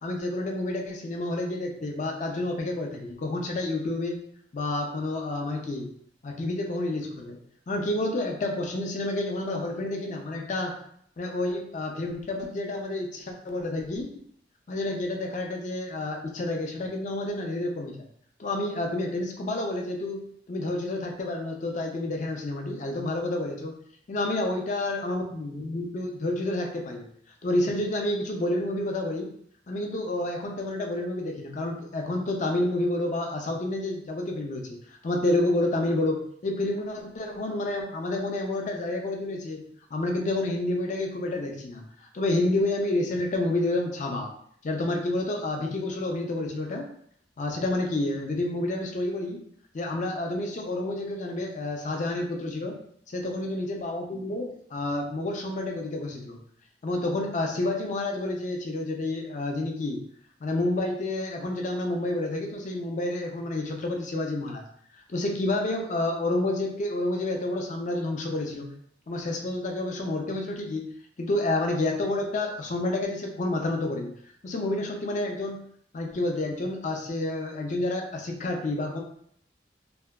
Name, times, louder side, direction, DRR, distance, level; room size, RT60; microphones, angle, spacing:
voice 1, 0.0-4.2 4.5-5.9 6.2-7.4 7.7-10.8 11.2-14.1 14.7-18.1 18.4-23.7 24.1-27.0 27.4-29.3 29.7-34.8 35.0-39.6 39.9-41.8 42.1-44.3 44.6-46.9 47.4-49.4 49.7-52.8 53.1-56.4 56.8-60.0 60.4-64.6 65.1-68.7 69.1-70.9 71.2-74.1 74.4-75.7 75.9-79.0, left 2 dB, 45° left, 2 dB, 0.4 m, -29 dB
2.6 x 2.2 x 2.2 m, 0.64 s
head